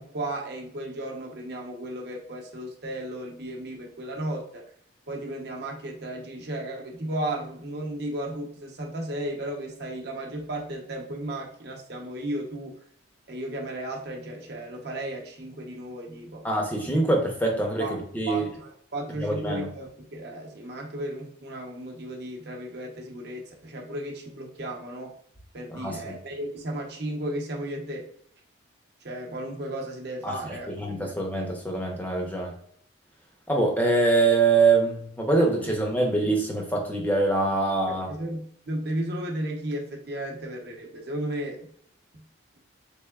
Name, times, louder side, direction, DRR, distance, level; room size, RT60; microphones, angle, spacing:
voice 1, 0.0-4.6 5.1-12.8 13.3-16.5 17.8-18.0 18.3-25.1 25.5-28.1 29.0-31.1 37.9-41.7 42.1-42.2, right 1 dB, 55° right, 0 dB, 0.8 m, -34 dB
voice 2, 16.4-18.5 19.2-19.7 25.7-26.1 30.2-32.5 33.5-38.1, right 3 dB, 10° left, 0 dB, 0.6 m, -24 dB
3.5 x 3.4 x 2.3 m, 0.65 s
head